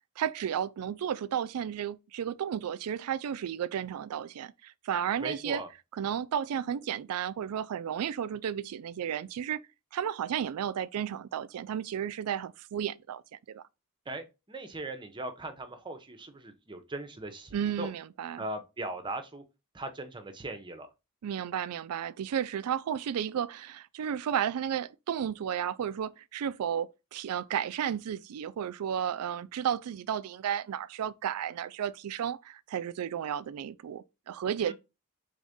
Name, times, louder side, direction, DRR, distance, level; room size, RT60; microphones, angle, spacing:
voice 1, 0.2-5.6 5.9-9.6 9.9-13.2 13.5-13.6 17.5-18.4 21.2-34.7, right 9 dB, 75° right, 0.3 m, -33 dB
voice 2, 5.2-5.7 14.1-17.9 18.4-19.4 19.7-20.9 34.6-34.7, right 2 dB, 20° right, 0.7 m, -39 dB
3.9 x 3.6 x 3.5 m
head